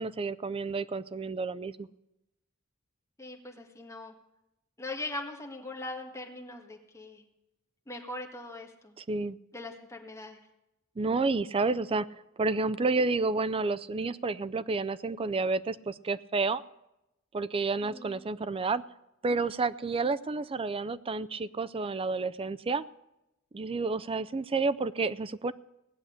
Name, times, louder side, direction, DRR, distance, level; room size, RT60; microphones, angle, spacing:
voice 1, 0.0-1.9 9.0-9.4 11.0-12.1 12.4-16.6 17.3-18.8 19.2-22.8 23.5-25.5, right 3 dB, 25° right, 16 dB, 0.4 m, -30 dB
voice 2, 3.2-4.1 4.8-7.2 7.9-9.0 9.5-10.4 17.8-18.2, left 2 dB, 15° left, 2 dB, 1.7 m, -41 dB
17.5 x 6.5 x 10.0 m, 0.90 s
head